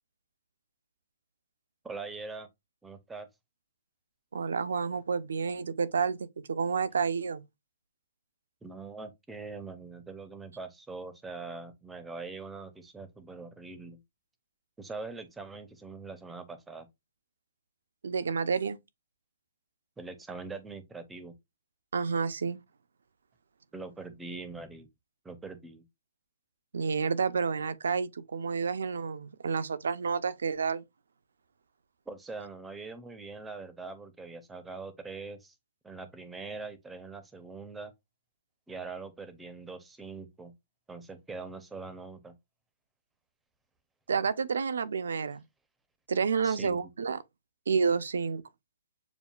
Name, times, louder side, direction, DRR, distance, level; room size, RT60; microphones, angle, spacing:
voice 1, 1.8-2.5 2.8-3.3 8.6-14.0 14.8-16.9 20.0-21.3 23.7-24.9 25.2-25.8 32.1-35.5 35.8-37.9 38.7-40.5 40.9-42.3 46.4-46.8, right 4 dB, 5° right, 0.5 m, -42 dB
voice 2, 4.3-7.4 18.0-18.8 21.9-22.6 26.7-30.8 44.1-45.4 46.1-47.2 47.7-48.4, right 5 dB, 80° right, 0.5 m, -30 dB
6.9 x 2.3 x 2.3 m
hypercardioid pair, 165°, 0 cm